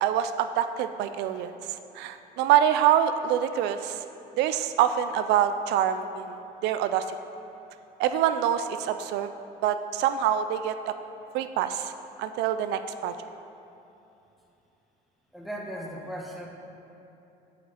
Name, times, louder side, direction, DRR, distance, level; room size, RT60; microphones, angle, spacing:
voice 1, 0.0-4.0 4.4-7.2 8.0-9.3 9.6-10.9 11.3-11.9 12.2-13.2, right 10 dB, 85° right, 10 dB, 0.4 m, -25 dB
voice 2, 15.3-16.5, equal, ahead, -2 dB, 1.3 m, -37 dB
7.6 x 6.1 x 5.7 m, 2.9 s
cardioid pair, 110°, 17 cm